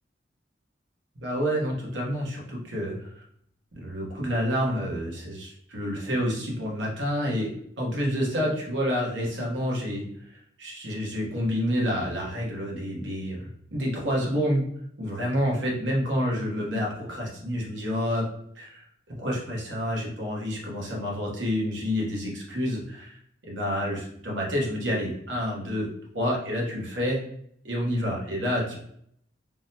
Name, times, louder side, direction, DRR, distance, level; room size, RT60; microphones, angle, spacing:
voice 1, 1.2-3.2 3.7-7.5 7.8-14.7 15.0-18.3 18.6-18.8 19.2-25.9 26.1-27.2 27.6-28.8, equal, 80° right, -3 dB, 0.9 m, -28 dB
3.6 x 2.1 x 2.7 m, 0.69 s
head